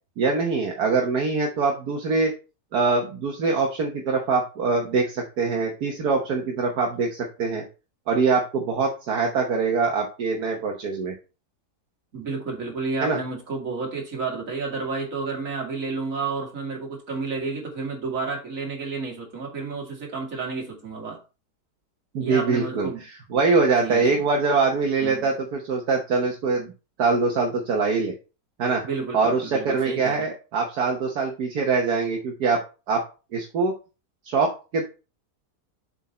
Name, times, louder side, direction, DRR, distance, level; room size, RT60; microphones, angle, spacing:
voice 1, 0.2-2.3 2.7-7.6 8.1-11.1 13.0-13.2 22.1-26.7 27.0-28.1 28.6-28.8 29.1-32.6 32.9-33.0 33.3-33.7 34.2-34.9, right 4 dB, 75° right, 1 dB, 1.6 m, -23 dB
voice 2, 12.1-21.2 22.2-23.0 23.8-24.2 25.0-25.3 28.8-30.3, right 4 dB, 55° right, 0 dB, 2.5 m, -31 dB
7.6 x 4.6 x 4.2 m, 0.32 s
omnidirectional pair, 1.7 m